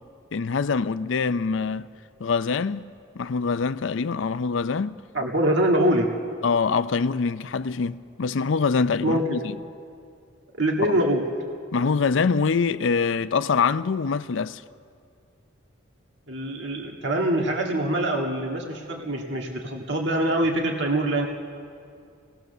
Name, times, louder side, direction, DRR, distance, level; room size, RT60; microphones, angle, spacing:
voice 1, 0.3-1.9 2.2-2.9 3.2-5.0 6.4-9.4 10.9-11.0 11.7-14.6, left 5 dB, 65° left, 0.5 m, -24 dB
voice 2, 5.1-6.1 9.0-9.4 10.6-11.2 16.3-21.3, right 1 dB, 60° right, 1.8 m, -24 dB
25.5 x 18.5 x 6.7 m
head